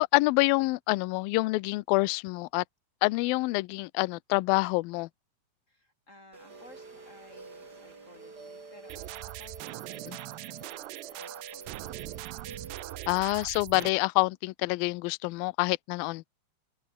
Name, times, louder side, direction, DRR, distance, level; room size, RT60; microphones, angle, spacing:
voice 1, 0.0-2.6 3.0-5.1 10.1-10.2 13.1-16.3, left 23 dB, 85° left, 2.1 m, -27 dB
voice 2, 5.7-12.0, left 1 dB, 20° left, 3.7 m, -56 dB
sound 1, 6.3-13.2, right 3 dB, 25° right, 3.8 m, -48 dB
sound 2, 8.9-13.9, right 20 dB, 80° right, 2.8 m, -41 dB
open air
omnidirectional pair, 4.9 m